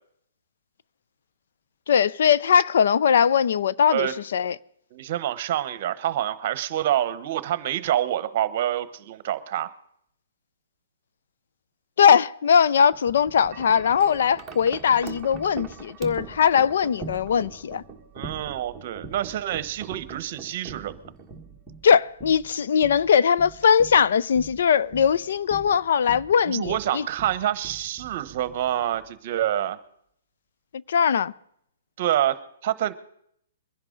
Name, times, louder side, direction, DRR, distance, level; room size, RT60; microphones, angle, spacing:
voice 1, 1.9-4.6 12.0-17.8 21.8-27.0 30.9-31.3, left 7 dB, 65° left, 0.5 m, -20 dB
voice 2, 3.9-4.2 4.9-9.7 18.1-20.9 26.5-29.8 32.0-32.9, right 12 dB, 45° right, 1.0 m, -27 dB
Wind chime, 12.9-29.1, right 5 dB, 10° right, 1.5 m, -42 dB
22.5 x 10.5 x 3.9 m
hypercardioid pair, 155°, 0 cm